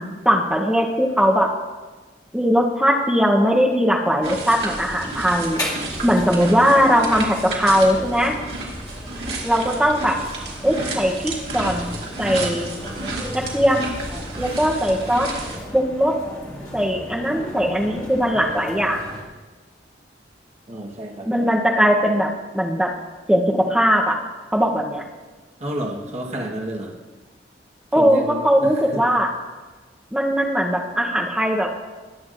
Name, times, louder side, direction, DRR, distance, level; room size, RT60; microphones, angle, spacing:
voice 1, 0.0-1.5 2.3-5.6 6.0-8.3 9.4-10.2 10.6-11.9 12.2-12.7 13.3-13.9 14.4-15.3 15.7-16.2 16.7-19.0 21.3-22.3 22.5-22.9 23.3-24.2 24.5-25.0 27.9-29.3 30.1-31.7, equal, 5° right, 0 dB, 0.8 m, -19 dB
sound 1, 4.2-15.6, right 2 dB, 65° right, 2.2 m, -32 dB
sound 2, 5.3-19.2, left 1 dB, 20° left, 1.9 m, -35 dB
voice 2, 20.7-21.5 25.6-27.0 27.9-29.0, right 1 dB, 35° right, -1 dB, 1.2 m, -30 dB
19.0 x 8.1 x 2.5 m, 1.3 s
head